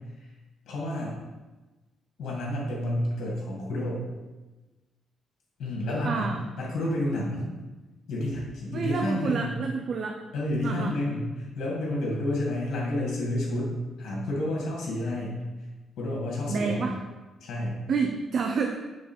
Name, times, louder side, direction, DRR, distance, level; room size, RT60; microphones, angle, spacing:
voice 1, 0.7-1.1 2.2-4.0 5.6-6.3 6.6-7.5 8.1-9.6 10.3-15.4 16.0-16.9 17.4-17.8, left 1 dB, 70° left, -4 dB, 2.0 m, -30 dB
voice 2, 6.0-6.4 8.7-10.2 10.6-10.9 16.5-17.0 17.9-18.7, right 5 dB, 55° right, 2 dB, 0.5 m, -28 dB
6.6 x 3.3 x 4.4 m, 1.2 s
cardioid pair, 90°, 0 cm